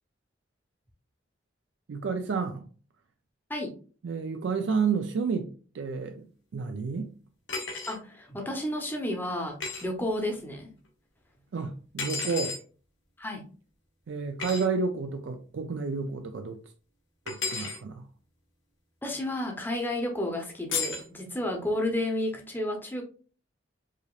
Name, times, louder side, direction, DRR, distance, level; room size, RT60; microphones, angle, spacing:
voice 1, 1.9-2.7 4.0-6.3 6.5-7.1 11.5-12.6 14.1-16.6 17.3-18.1, right 5 dB, 75° right, 0.4 m, -30 dB
sound 1, 7.5-8.0 9.6-9.8 12.0-12.6 14.4-14.6 17.3-17.8 20.7-21.1, left 4 dB, 85° left, 1.1 m, -32 dB
voice 2, 7.9-10.7 13.2-13.5 19.0-23.0, left 1 dB, 10° left, 0.7 m, -31 dB
4.9 x 2.7 x 2.4 m
head